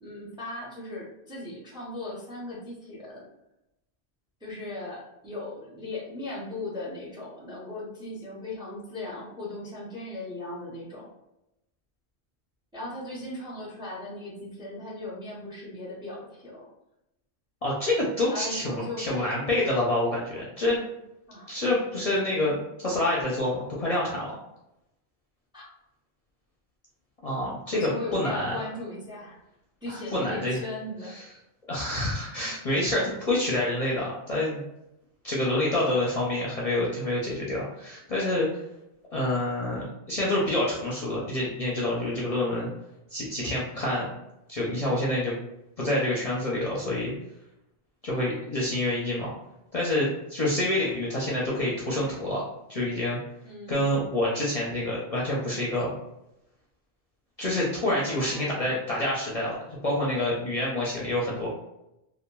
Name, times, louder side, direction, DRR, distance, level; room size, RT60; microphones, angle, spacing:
voice 1, 0.0-3.3 4.4-11.1 12.7-16.7 18.3-19.0 21.3-21.5 22.3-22.4 25.5-25.7 27.7-29.4 29.8-31.2 53.4-54.0 58.1-58.8, left 2 dB, 5° right, -5 dB, 0.6 m, -38 dB
voice 2, 17.6-20.8 21.5-22.6 22.8-24.4 27.2-28.6 29.9-30.6 31.1-31.2 31.7-34.6 35.2-38.6 39.1-42.7 43.1-44.1 44.5-45.3 45.8-47.1 48.0-49.3 49.7-52.4 52.7-53.2 53.7-55.9 57.4-61.5, left 1 dB, 45° left, -5 dB, 0.6 m, -27 dB
2.9 x 2.3 x 2.2 m, 0.88 s
omnidirectional pair, 1.0 m